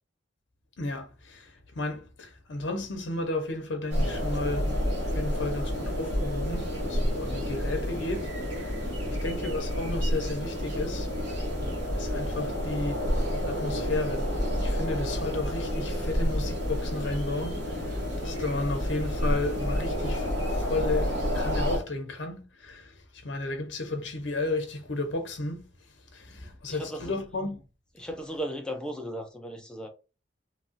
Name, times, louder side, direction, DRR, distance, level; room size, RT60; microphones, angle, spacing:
voice 1, 0.8-4.7 5.1-8.9 9.2-11.1 11.9-13.0 13.4-25.6 26.1-27.6, left 2 dB, 70° left, 0.7 m, -33 dB
sound 1, 3.9-21.8, equal, 75° right, 1.5 m, -29 dB
voice 2, 8.9-9.2 26.3-27.1 28.0-29.9, equal, 5° left, 0.5 m, -37 dB
3.1 x 2.3 x 2.6 m
head